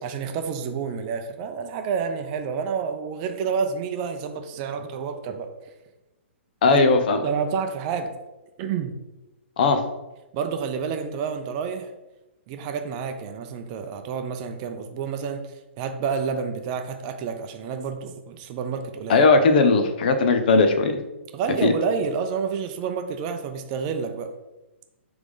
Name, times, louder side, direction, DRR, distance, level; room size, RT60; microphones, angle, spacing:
voice 1, 0.0-5.5 6.7-6.8 7.2-8.1 8.6-9.0 10.3-11.9 12.5-15.5 15.8-19.2 21.3-24.3, right 6 dB, 30° right, 6 dB, 0.6 m, -29 dB
voice 2, 6.6-7.2 9.6-9.8 19.1-21.0 21.6-21.7, left 3 dB, 45° left, 7 dB, 0.8 m, -18 dB
6.0 x 3.5 x 5.3 m, 1.0 s
figure-of-eight pair, 120°, 7 cm